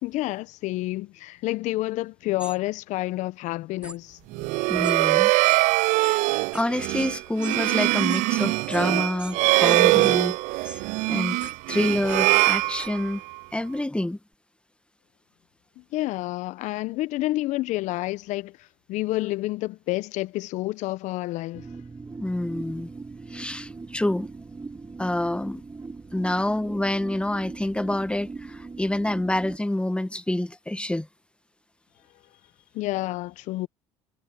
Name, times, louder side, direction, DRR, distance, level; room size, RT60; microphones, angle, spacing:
voice 1, 0.0-4.5 15.8-18.6 18.9-21.6 32.7-33.7, left 18 dB, 65° left, 1.1 m, -29 dB
sound 1, 2.4-2.6 3.8-4.0 4.8-5.0 5.4-5.6 6.0-6.2 6.5-6.6 7.0-7.1 7.4-8.8 9.2-9.4 9.6-10.1 10.6-10.8 11.4-11.5 12.1-12.2 12.8-12.9, right 1 dB, 10° right, 3.8 m, -41 dB
sound 2, 4.3-13.4, right 22 dB, 65° right, 0.5 m, -22 dB
voice 2, 4.7-5.3 5.9-6.3 6.5-10.8 11.1-11.4 11.7-13.2 13.5-14.2 22.2-22.9 23.3-24.3 25.0-25.6 26.1-31.1, left 1 dB, 10° left, 1.9 m, -27 dB
sound 3, 21.5-29.6, right 4 dB, 25° right, 2.6 m, -40 dB
hypercardioid pair, 55°, 13 cm